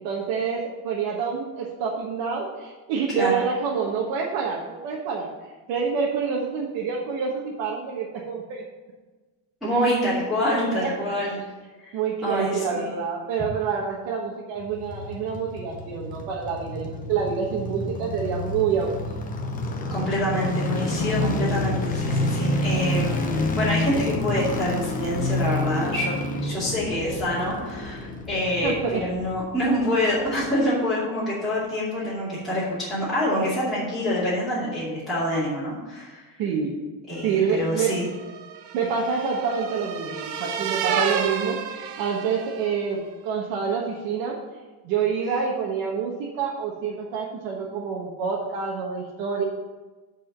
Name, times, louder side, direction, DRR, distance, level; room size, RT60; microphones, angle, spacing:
voice 1, 0.0-5.3 5.7-8.6 10.4-10.9 11.9-19.0 28.6-29.0 32.0-32.1 36.4-36.7 37.2-37.9 38.7-44.4 44.8-49.4, right 6 dB, 80° right, -3 dB, 1.5 m, -27 dB
voice 2, 3.1-3.4 9.6-11.4 11.8-12.9 19.9-26.1 26.4-36.2 37.1-38.1, left 1 dB, ahead, -12 dB, 2.6 m, -26 dB
sound 1, 14.6-29.8 30.1-30.2, left 1 dB, 20° left, 0.8 m, -28 dB
sound 2, 37.4-42.8, right 7 dB, 60° right, 0.9 m, -31 dB
8.4 x 5.0 x 7.2 m, 1.3 s
cardioid pair, 160°, 44 cm